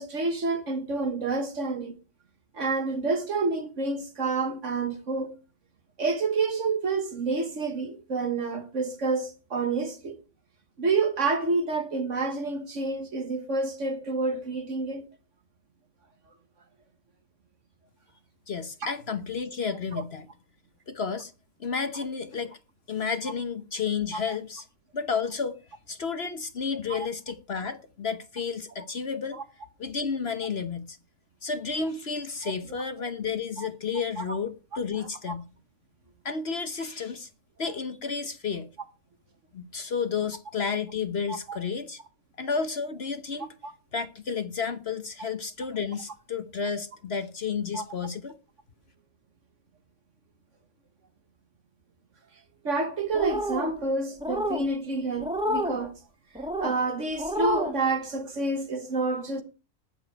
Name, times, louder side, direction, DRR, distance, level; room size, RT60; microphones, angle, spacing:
voice 1, 0.0-2.0 2.5-5.3 6.0-10.2 10.8-15.1 19.9-20.0 24.1-24.4 26.9-27.1 29.3-29.4 32.4-32.5 33.6-33.7 34.2-34.4 41.3-41.6 43.6-43.7 47.7-47.8 52.6-55.9 56.6-59.4, right 3 dB, 65° right, 1.8 m, -28 dB
voice 2, 18.5-20.3 20.9-21.3 21.6-22.6 22.9-24.6 24.9-25.6 25.9-29.4 29.8-31.0 31.4-35.5 36.2-37.3 37.6-38.7 39.5-42.0 42.4-43.5 43.9-48.4, left 5 dB, 55° left, 1.2 m, -31 dB
sound 1, 53.1-53.7 54.2-54.6 55.2-55.8 56.3-56.7 57.2-57.7, equal, 5° right, 2.0 m, -29 dB
19.0 x 7.4 x 4.7 m
omnidirectional pair, 1.4 m